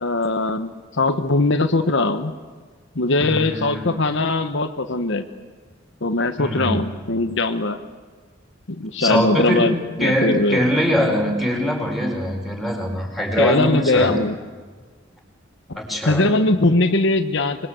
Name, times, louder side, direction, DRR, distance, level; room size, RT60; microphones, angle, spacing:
voice 1, 0.0-0.7 1.0-2.3 2.9-5.2 6.0-7.8 8.7-10.6 13.4-14.3 15.7-15.8 16.1-17.7, left 2 dB, 65° left, 8 dB, 1.2 m, -20 dB
voice 2, 3.2-3.8 6.4-6.8 9.0-9.7 10.0-14.1 15.7-16.3, equal, ahead, 0 dB, 4.8 m, -22 dB
25.5 x 21.5 x 8.0 m, 1.5 s
head